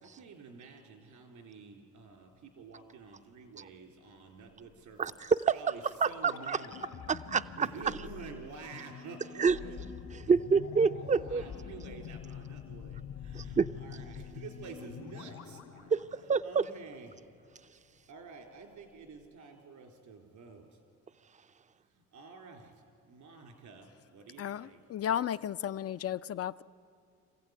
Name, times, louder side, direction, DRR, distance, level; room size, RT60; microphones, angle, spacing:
voice 1, 0.0-5.2 5.5-6.9 7.6-9.8 11.0-15.9 16.4-17.2 18.1-20.8 21.9-24.8, right 5 dB, 80° right, 3.8 m, -49 dB
sound 1, 5.0-17.0 17.2-17.3, left 8 dB, 80° left, 2.4 m, -46 dB
voice 2, 5.0-5.7 6.0-6.6 7.1-7.7 9.4-9.6 10.3-11.4 13.3-13.7 15.9-16.0 16.3-16.7, right 5 dB, 25° right, 0.6 m, -27 dB
voice 3, 24.4-26.6, left 10 dB, 50° left, 0.5 m, -34 dB
25.5 x 15.5 x 9.5 m
cardioid pair, 90°, 30 cm